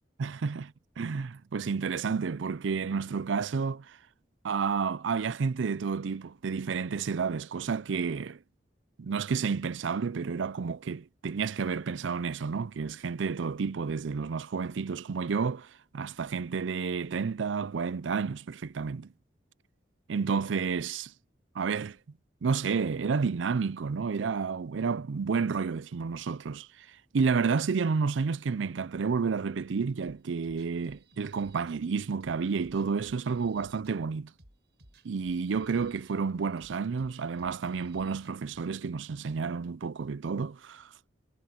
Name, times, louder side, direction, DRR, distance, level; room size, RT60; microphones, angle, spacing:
voice 1, 0.2-4.0 4.4-8.4 9.0-19.1 20.1-21.1 21.6-22.0 22.4-26.9 27.1-34.3 35.0-40.9, right 5 dB, 85° right, 0.5 m, -30 dB
sound 1, 30.0-38.6, right 1 dB, 65° right, 5.4 m, -58 dB
head